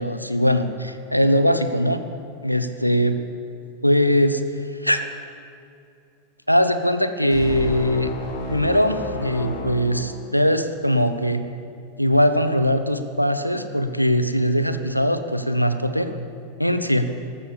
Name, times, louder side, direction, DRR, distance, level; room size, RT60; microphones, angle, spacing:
voice 1, 0.0-2.0 2.4-3.2 3.8-4.4 4.8-5.0 6.5-8.1 8.5-11.4 12.0-16.1 16.6-17.1, equal, 90° left, 10 dB, 0.8 m, -21 dB
sound 1, 7.3-10.8, left 2 dB, 45° left, 2.5 m, -32 dB
14.5 x 13.0 x 7.0 m, 2.5 s
figure-of-eight pair, 90°, 0 cm